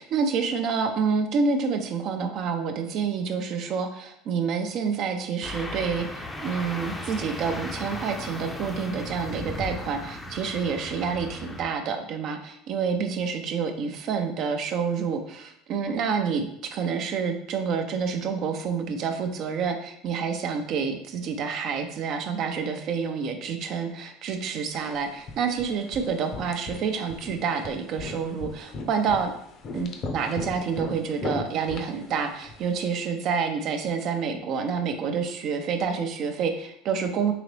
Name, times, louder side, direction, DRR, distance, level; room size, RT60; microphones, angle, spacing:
voice 1, 0.0-29.3 29.7-37.3, right 6 dB, 55° right, 6 dB, 0.6 m, -28 dB
sound 1, 5.4-11.7, left 2 dB, 10° left, 0.6 m, -36 dB
sound 2, 24.7-32.9, left 3 dB, 50° left, 0.7 m, -38 dB
3.9 x 2.9 x 3.2 m, 0.72 s
hypercardioid pair, 85°, 0 cm